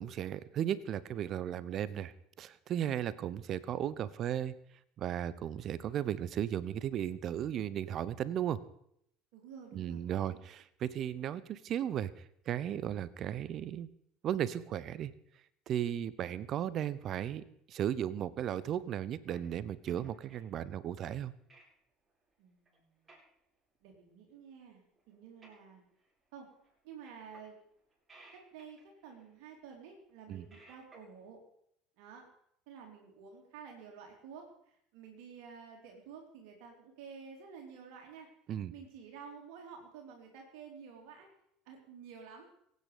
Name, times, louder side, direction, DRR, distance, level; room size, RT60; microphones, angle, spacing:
voice 1, 0.0-4.5 5.0-8.6 9.7-13.9 14.2-15.1 15.7-21.3 30.3-30.5 38.5-38.7, right 10 dB, 45° right, 18 dB, 0.9 m, -35 dB
voice 2, 9.3-10.0 10.3-10.4 22.4-23.1 23.8-25.8 26.3-26.5 26.8-27.6 28.3-31.4 32.0-32.2 32.7-38.3 38.7-41.3 41.6-42.4, right 6 dB, 60° right, 1 dB, 3.3 m, -51 dB
sound 1, 19.3-20.5 21.1-21.2 21.5-21.7 22.1-22.3 22.7-22.8 23.0-23.3 23.7-23.9 24.5-24.6 25.0-26.1 26.4-26.8 27.1-27.6 27.9-29.5 30.1-31.2, right 2 dB, 20° right, 6.5 m, -61 dB
23.0 x 9.3 x 5.1 m, 0.73 s
figure-of-eight pair, 65°, 0 cm